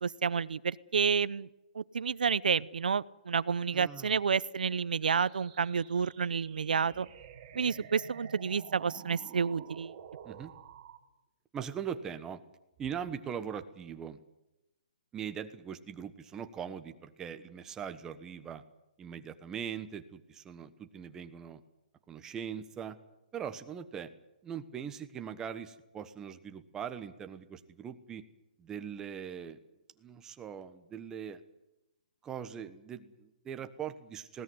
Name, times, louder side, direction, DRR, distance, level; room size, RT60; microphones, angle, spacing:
voice 1, 0.0-1.5 1.7-7.1 7.5-9.9, right 6 dB, 85° right, 18 dB, 0.8 m, -30 dB
voice 2, 3.7-4.2 7.8-7.9 10.2-10.5 11.5-12.4 12.8-14.2 15.1-18.6 19.0-21.6 22.1-23.0 23.3-24.1 24.4-28.2 28.6-29.6 30.0-31.4 32.2-34.4, right 8 dB, 10° right, 9 dB, 1.2 m, -41 dB
sound 1, 5.0-11.0, right 9 dB, 35° right, 3.2 m, -50 dB
20.0 x 17.0 x 9.6 m, 0.95 s
hypercardioid pair, 160°, 5 cm